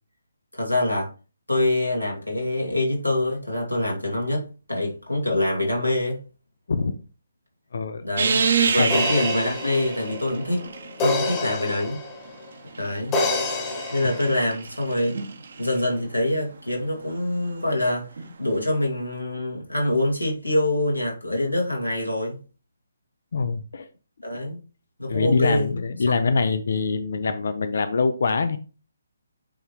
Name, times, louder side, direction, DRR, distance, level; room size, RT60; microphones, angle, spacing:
voice 1, 0.5-1.1 1.5-6.2 8.0-10.7 11.0-12.0 12.8-13.2 13.9-15.2 15.6-18.1 18.4-22.4 24.2-24.6 25.0-25.7, left 1 dB, 85° left, 2.6 m, -25 dB
voice 2, 7.7-8.0 8.8-8.9 23.3-23.9 25.1-28.6, left 4 dB, 50° left, 0.6 m, -24 dB
sound 1, 8.2-11.3 12.3-15.8 18.2-18.3, right 5 dB, 50° right, 1.0 m, -28 dB
sound 2, 8.9-12.4 13.1-14.4, left 2 dB, 20° left, 1.3 m, -28 dB
8.7 x 3.4 x 3.1 m
figure-of-eight pair, 140°, 0 cm